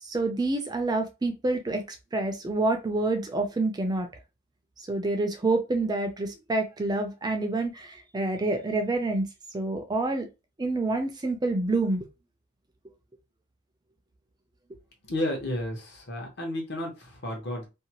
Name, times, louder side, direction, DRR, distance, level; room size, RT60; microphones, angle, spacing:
voice 1, 0.0-4.1 4.9-9.3 9.5-10.3 10.6-12.1, right 2 dB, 20° right, 0.4 m, -27 dB
voice 2, 15.1-17.7, left 1 dB, 60° left, 1.0 m, -32 dB
2.7 x 2.2 x 2.8 m
head